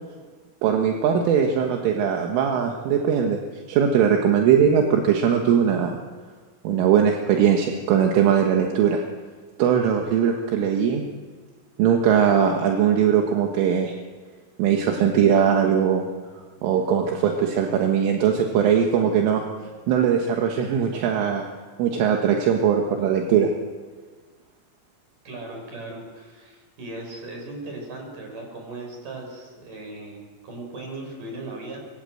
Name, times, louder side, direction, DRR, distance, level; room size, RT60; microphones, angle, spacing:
voice 1, 0.6-3.4 3.7-6.0 6.7-9.0 9.6-11.0 11.8-13.9 14.6-16.1 16.6-19.4 19.9-21.4 21.8-23.5, right 8 dB, 75° right, 2 dB, 4.0 m, -20 dB
voice 2, 25.2-31.8, right 2 dB, 40° right, 2 dB, 7.4 m, -37 dB
24.5 x 24.0 x 7.9 m, 1.5 s
omnidirectional pair, 5.9 m